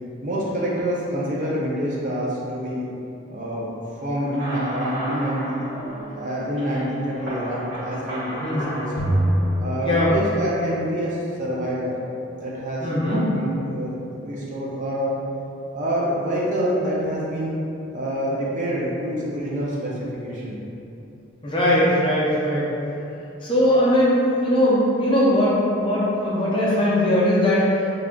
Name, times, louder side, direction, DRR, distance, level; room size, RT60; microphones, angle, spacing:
voice 1, 0.2-2.8 3.3-3.7 4.0-5.6 6.2-8.9 9.6-11.9 12.4-15.1 15.7-17.5 17.9-19.9 20.2-20.6, equal, 40° right, -6 dB, 0.5 m, -26 dB
sound 1, 4.2-10.0, right 1 dB, 80° right, 1.3 m, -34 dB
voice 2, 8.4-8.8 9.8-10.1 12.8-13.3 21.4-22.7 23.4-28.0, left 1 dB, 25° left, -7 dB, 0.5 m, -20 dB
sound 2, 9.0-10.8, right 1 dB, 65° left, 0.7 m, -24 dB
3.3 x 2.4 x 3.7 m, 2.7 s
head